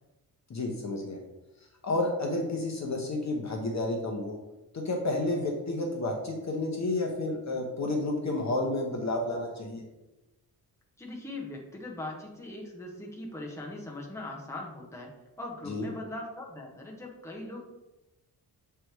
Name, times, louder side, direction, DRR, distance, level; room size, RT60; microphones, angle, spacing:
voice 1, 0.5-1.2 1.8-4.4 4.7-9.8 15.7-15.9, left 2 dB, 45° left, 1 dB, 1.1 m, -31 dB
voice 2, 11.0-17.6, left 2 dB, 5° left, -2 dB, 1.3 m, -40 dB
7.6 x 3.5 x 4.6 m, 1.0 s
cardioid pair, 120°, 39 cm